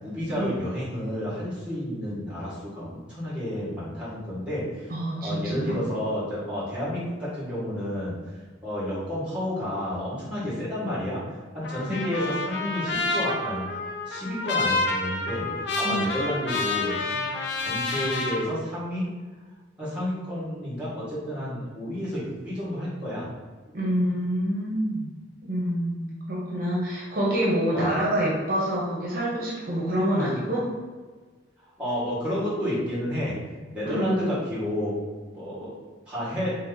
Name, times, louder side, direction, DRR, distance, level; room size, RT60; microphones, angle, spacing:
voice 1, 0.0-4.9 5.2-8.1 8.6-11.2 11.5-13.7 14.0-15.5 15.8-17.3 17.6-19.1 19.8-23.3 27.7-27.9 31.8-33.4 33.7-34.9 35.3-35.7 36.1-36.5, left 1 dB, 5° right, -8 dB, 1.4 m, -30 dB
voice 2, 4.9-5.8 11.9-12.1 15.8-16.1 23.7-25.1 25.4-30.7 33.8-34.3, equal, 45° right, -6 dB, 0.8 m, -27 dB
Trumpet, 11.6-18.4, left 3 dB, 60° left, 0.5 m, -29 dB
3.3 x 3.0 x 3.8 m, 1.4 s
head